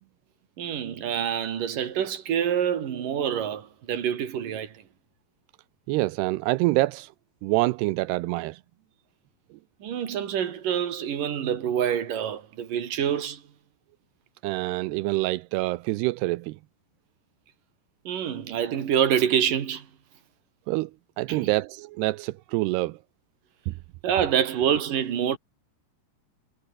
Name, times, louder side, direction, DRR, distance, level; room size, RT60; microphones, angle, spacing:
voice 1, 0.6-4.8 9.8-13.4 18.1-19.9 21.3-21.5 24.0-25.4, right 9 dB, 50° right, 3.8 m, -26 dB
voice 2, 5.9-7.1 7.4-8.6 14.4-16.6 20.7-20.9 21.2-23.0 23.7-23.8, right 20 dB, 80° right, 2.4 m, -26 dB
omnidirectional pair, 5.3 m